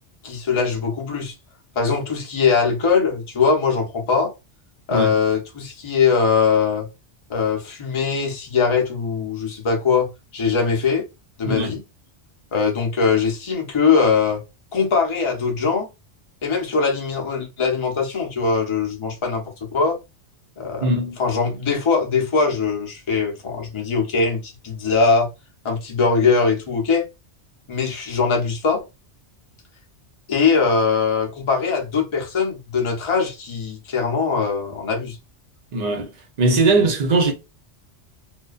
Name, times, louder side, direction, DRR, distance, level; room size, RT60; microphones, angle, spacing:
voice 1, 0.2-1.3 1.8-4.3 4.9-6.9 7.3-11.0 11.4-11.8 12.5-14.4 14.7-15.9 16.4-20.0 20.6-20.9 21.2-25.3 25.6-27.1 27.7-28.9 30.3-35.2, left 5 dB, 35° left, 0.6 m, -21 dB
voice 2, 11.4-11.7 20.8-21.2 35.7-36.1 36.4-37.3, right 2 dB, 50° right, 0.6 m, -19 dB
2.5 x 2.1 x 2.3 m
omnidirectional pair, 1.2 m